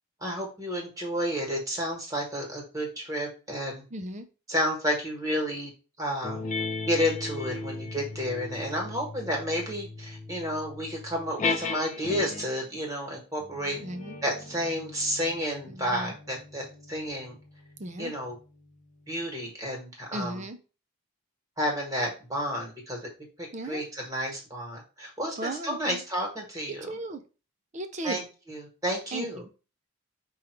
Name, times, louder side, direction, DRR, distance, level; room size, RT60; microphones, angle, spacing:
voice 1, 0.2-3.8 4.5-5.7 6.0-6.4 6.9-13.8 14.2-17.4 18.0-18.4 19.1-20.4 21.6-23.0 23.6-26.9 28.0-29.4, equal, 15° right, 0 dB, 1.3 m, -31 dB
voice 2, 3.9-4.3 13.8-14.2 15.7-16.1 17.8-18.1 20.1-20.6 23.5-23.8 25.4-26.0 26.8-27.2 27.7-28.2 29.1-29.5, right 2 dB, 35° right, 8 dB, 0.5 m, -36 dB
sound 1, 6.2-12.6 13.4-18.3, left 4 dB, 35° left, 0.5 m, -37 dB
5.0 x 2.3 x 4.4 m, 0.33 s
head